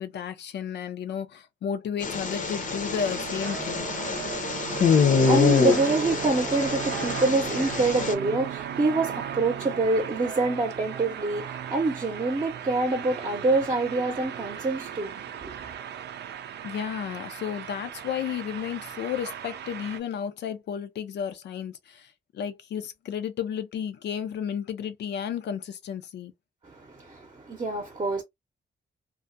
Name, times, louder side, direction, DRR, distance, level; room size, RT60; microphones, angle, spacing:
voice 1, 0.0-3.9 16.6-26.3, left 8 dB, 85° left, 0.5 m, -33 dB
sound 1, 2.0-8.1, left 5 dB, 50° left, 0.6 m, -25 dB
sound 2, 2.1-20.0, right 9 dB, 80° right, 0.4 m, -36 dB
voice 2, 4.5-15.7 26.6-28.2, right 2 dB, 30° right, 0.7 m, -26 dB
2.3 x 2.1 x 2.5 m
cardioid pair, 90°, 17 cm